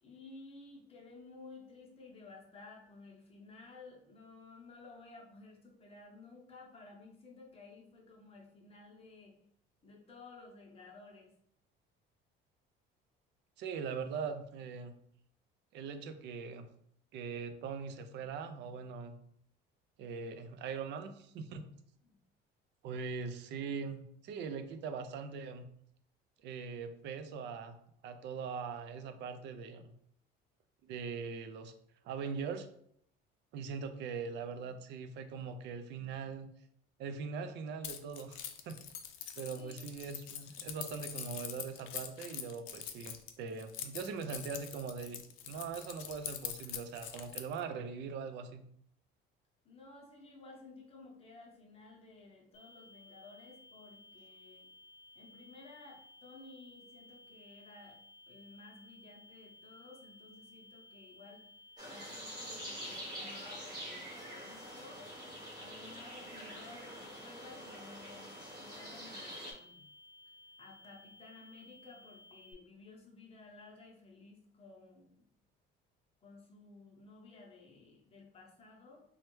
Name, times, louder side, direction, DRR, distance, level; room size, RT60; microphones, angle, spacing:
voice 1, 0.0-9.4 9.8-11.3 22.0-22.2 39.5-39.8 49.6-54.7 55.1-58.0 58.3-61.5 61.9-65.0 65.6-69.9 70.6-75.2 76.2-79.0, left 3 dB, 30° left, -1 dB, 0.7 m, -55 dB
voice 2, 13.6-15.0 15.7-16.7 17.1-19.2 20.0-21.7 22.8-25.7 26.4-27.8 28.0-29.9 30.8-31.7 32.0-32.7 33.5-36.5 37.0-38.8 39.4-48.7, right 5 dB, 60° right, 9 dB, 0.4 m, -41 dB
Keys jangling, 37.8-47.6, left 10 dB, 85° left, 0.4 m, -44 dB
sound 1, 52.5-72.5, left 2 dB, 65° left, 0.7 m, -58 dB
sound 2, 61.8-69.5, equal, 20° right, 0.9 m, -46 dB
3.1 x 2.2 x 3.0 m, 0.69 s
cardioid pair, 140°, 20 cm